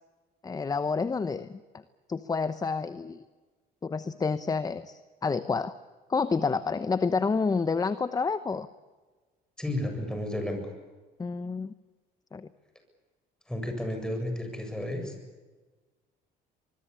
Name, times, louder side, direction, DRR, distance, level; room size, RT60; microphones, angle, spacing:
voice 1, 0.4-1.5 2.1-3.2 3.8-5.7 6.1-8.7 11.2-11.7 12.3-12.5, left 4 dB, 20° left, 13 dB, 0.9 m, -29 dB
voice 2, 9.6-10.6 13.5-15.1, left 1 dB, 5° left, 4 dB, 7.6 m, -32 dB
25.0 x 21.5 x 8.5 m, 1.3 s
cardioid pair, 110°, 17 cm